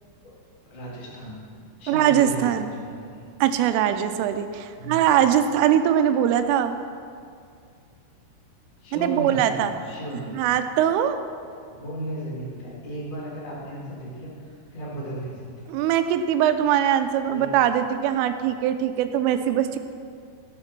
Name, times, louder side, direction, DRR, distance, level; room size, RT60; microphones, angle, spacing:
voice 1, 0.6-1.4 1.8-3.2 4.7-5.1 8.8-10.5 11.7-15.7 17.2-17.5, right 1 dB, 20° left, -5 dB, 1.2 m, -35 dB
voice 2, 1.9-2.7 3.4-6.7 8.9-9.7 10.3-11.2 15.7-19.8, right 10 dB, 85° right, 9 dB, 3.2 m, -21 dB
13.5 x 8.7 x 6.0 m, 2.3 s
omnidirectional pair, 5.7 m